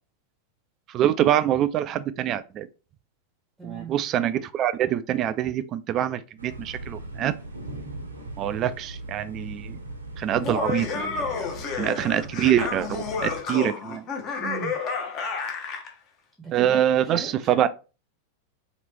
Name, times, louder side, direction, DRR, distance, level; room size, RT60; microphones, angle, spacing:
voice 1, 0.9-2.7 3.6-7.3 8.4-9.8 10.2-11.5 11.8-14.0 16.5-17.7, right 11 dB, 35° right, 0.3 m, -25 dB
voice 2, 3.6-4.0 14.4-14.8 16.4-17.7, right 4 dB, 10° right, 0.8 m, -37 dB
sound 1, 6.4-13.4, right 2 dB, 80° right, 0.8 m, -39 dB
Laughter, 10.3-15.9, left 5 dB, 35° left, 0.8 m, -30 dB
3.0 x 2.9 x 3.2 m
figure-of-eight pair, 90°, 0 cm